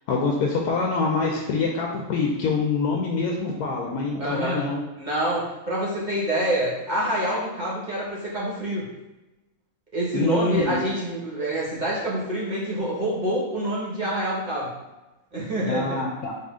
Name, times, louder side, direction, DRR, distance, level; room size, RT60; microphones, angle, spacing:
voice 1, 0.1-4.8 10.1-10.8 15.7-16.3, left 4 dB, 85° left, -1 dB, 1.1 m, -25 dB
voice 2, 4.2-4.6 5.0-8.9 9.9-14.7 15.3-16.0, right 1 dB, 35° right, -6 dB, 1.1 m, -26 dB
4.1 x 2.6 x 3.5 m, 1.0 s
omnidirectional pair, 1.5 m